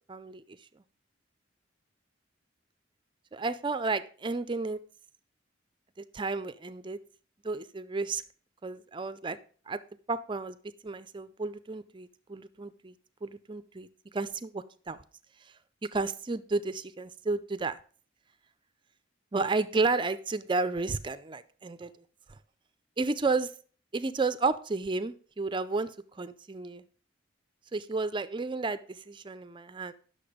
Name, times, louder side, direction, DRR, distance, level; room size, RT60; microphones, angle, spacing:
voice 1, 0.1-0.6 3.3-4.8 6.0-7.0 7.4-8.2 8.6-9.4 9.7-9.8 10.1-10.6 10.8-12.9 13.2-13.9 14.1-15.0 15.9-17.8 19.3-21.9 23.0-23.5 23.9-26.8 27.7-29.9, right 3 dB, 25° right, 13 dB, 0.5 m, -32 dB
10.5 x 6.7 x 5.0 m, 0.42 s
head